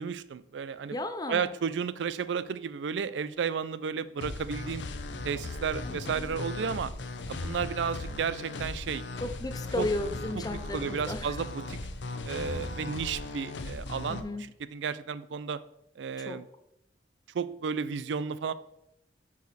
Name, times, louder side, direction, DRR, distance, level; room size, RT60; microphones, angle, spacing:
voice 1, 0.0-1.0 1.3-4.8 5.2-6.9 7.3-9.0 9.8-9.9 10.5-11.8 12.2-14.3 14.7-15.6 16.0-16.5 17.3-18.5, right 6 dB, 75° right, 16 dB, 0.4 m, -33 dB
voice 2, 0.9-1.5 5.8-6.3 9.2-11.4 14.1-14.5 16.2-16.4, left 1 dB, 20° left, 10 dB, 0.5 m, -34 dB
sound 1, 4.2-14.2, left 2 dB, 75° left, 0.7 m, -38 dB
8.2 x 4.9 x 4.1 m, 0.82 s
head